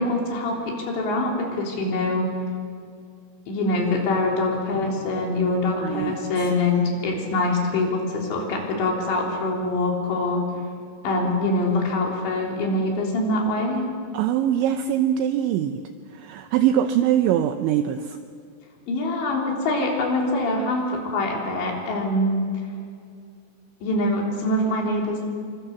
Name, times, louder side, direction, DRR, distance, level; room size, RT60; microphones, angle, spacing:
voice 1, 0.0-2.3 3.5-10.4 11.0-13.8 18.9-22.4 23.8-25.2, left 2 dB, 60° left, -1 dB, 5.7 m, -24 dB
voice 2, 5.7-6.5 14.1-15.8 16.1-18.2, right 10 dB, 80° right, 8 dB, 2.8 m, -23 dB
28.0 x 24.5 x 7.1 m, 2.2 s
omnidirectional pair, 5.9 m